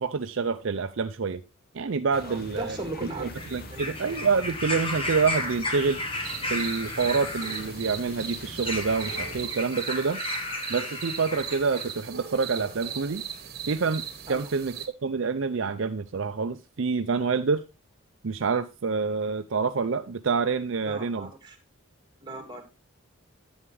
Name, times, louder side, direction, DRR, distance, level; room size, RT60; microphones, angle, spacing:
voice 1, 0.0-1.4 1.7-2.8 3.2-6.0 6.5-10.2 10.7-13.2 13.7-14.0 14.3-14.7 15.0-17.6 18.2-21.3, right 5 dB, 60° right, 8 dB, 0.5 m, -27 dB
sound 1, 2.1-9.5, left 2 dB, 45° left, 1.1 m, -43 dB
voice 2, 2.2-3.3 3.7-4.0 14.3-14.5 20.9-21.6 22.2-22.7, right 2 dB, 20° right, 5 dB, 2.0 m, -37 dB
sound 2, 3.3-11.9 12.8-12.9, left 2 dB, 25° left, 1.3 m, -34 dB
sound 3, 6.2-14.9, right 9 dB, 45° right, 1.4 m, -38 dB
11.0 x 8.1 x 3.2 m, 0.25 s
head